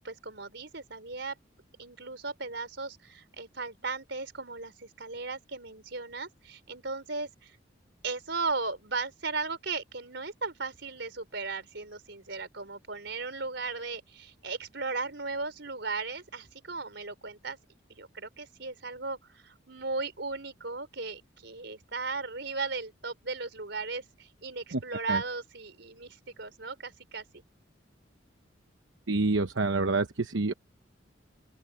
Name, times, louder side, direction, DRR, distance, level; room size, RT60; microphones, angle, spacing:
voice 1, 0.0-1.4 1.8-7.6 8.0-17.6 17.9-27.4, right 4 dB, 65° right, 4.9 m, -36 dB
voice 2, 29.1-30.5, right 3 dB, 85° right, 1.0 m, -27 dB
open air
head